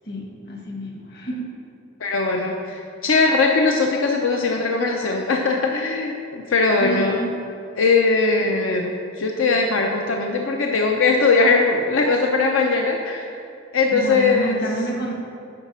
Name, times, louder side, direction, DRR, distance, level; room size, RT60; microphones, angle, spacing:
voice 1, 0.0-1.4 6.8-7.4 13.9-15.1, right 1 dB, 50° left, 0 dB, 1.4 m, -29 dB
voice 2, 2.0-7.2 7.8-13.3 13.7-14.6, left 3 dB, 85° left, 1 dB, 0.6 m, -20 dB
9.9 x 4.0 x 6.0 m, 2.7 s
head